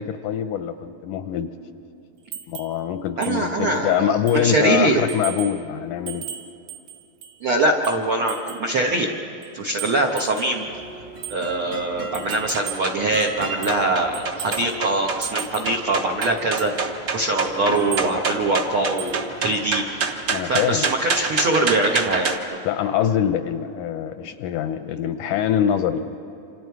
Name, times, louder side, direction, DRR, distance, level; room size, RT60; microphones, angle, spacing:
voice 1, 0.0-1.5 2.5-6.2 20.3-20.9 22.6-26.2, left 9 dB, 80° left, 9 dB, 1.9 m, -24 dB
sound 1, 2.3-2.8 3.2-3.4 3.8-3.9 4.3-4.5 5.1-5.6 6.1-7.4 7.8-8.7 9.4-10.6 11.2-11.4 12.1-12.9 13.2-13.9 14.1-14.8 15.2-15.8 16.2-16.8 17.8-18.1 19.0-19.3 19.5-19.7, right 9 dB, 90° right, 3.1 m, -36 dB
voice 2, 3.2-5.0 7.4-9.1 9.5-10.7 11.3-19.8 20.5-22.6, right 2 dB, 70° right, 1 dB, 1.2 m, -23 dB
sound 2, 10.6-22.4, right 4 dB, 50° right, 1.4 m, -28 dB
27.5 x 27.5 x 4.7 m, 2.8 s
omnidirectional pair, 4.1 m